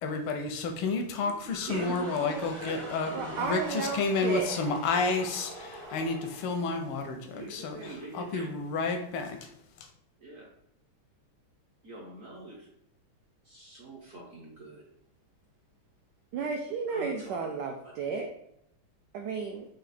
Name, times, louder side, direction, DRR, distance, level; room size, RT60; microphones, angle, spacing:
voice 1, 0.0-9.5, left 4 dB, 80° left, 5 dB, 1.5 m, -31 dB
sound 1, 1.5-7.2, right 2 dB, 25° right, 0.6 m, -44 dB
voice 2, 1.6-3.0 7.2-8.6 10.2-10.5 11.8-12.7 13.4-14.8 16.9-17.6 17.8-17.9, right 2 dB, 55° right, -3 dB, 0.9 m, -43 dB
voice 3, 3.1-4.5 16.3-18.3 19.1-19.7, right 5 dB, 80° right, 3 dB, 0.9 m, -33 dB
5.1 x 2.4 x 4.1 m, 0.77 s
omnidirectional pair, 2.4 m